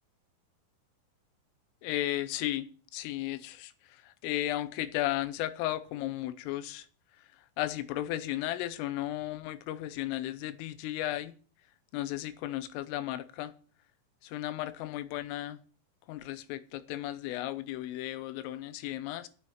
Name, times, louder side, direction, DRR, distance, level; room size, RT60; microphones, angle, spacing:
voice 1, 1.8-6.9 7.6-11.3 11.9-13.5 14.2-15.6 16.1-19.3, left 14 dB, 85° left, 3.4 m, -35 dB
8.9 x 7.6 x 8.1 m
omnidirectional pair, 5.9 m